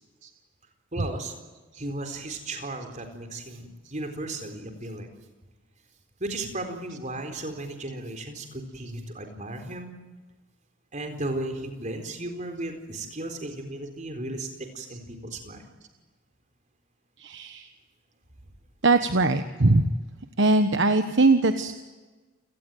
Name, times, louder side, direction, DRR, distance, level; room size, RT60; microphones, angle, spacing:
voice 1, 0.9-1.3 1.8-5.1 6.2-9.9 10.9-14.5 14.7-15.6, right 2 dB, 35° right, 6 dB, 4.2 m, -35 dB
voice 2, 17.2-17.7 18.8-19.8 20.4-21.7, right 2 dB, 55° right, 8 dB, 1.3 m, -21 dB
29.0 x 18.5 x 9.3 m, 1.3 s
head